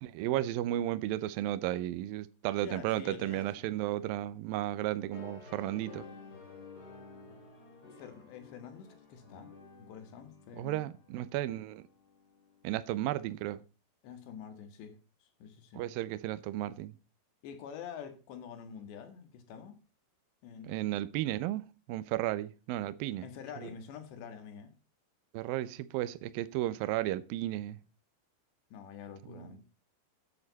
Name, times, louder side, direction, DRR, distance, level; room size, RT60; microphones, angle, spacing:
voice 1, 0.0-6.1 10.6-11.8 12.6-13.6 15.8-16.9 20.6-23.2 25.3-27.8 29.3-29.5, right 14 dB, 75° right, 2.2 m, -34 dB
voice 2, 2.6-3.5 7.9-9.5 9.9-10.9 14.0-15.8 17.4-19.8 20.4-20.8 23.2-24.7 28.7-29.6, left 7 dB, 85° left, 4.0 m, -47 dB
sound 1, 5.1-13.0, left 4 dB, 30° left, 2.5 m, -53 dB
14.0 x 8.8 x 4.1 m
omnidirectional pair, 4.9 m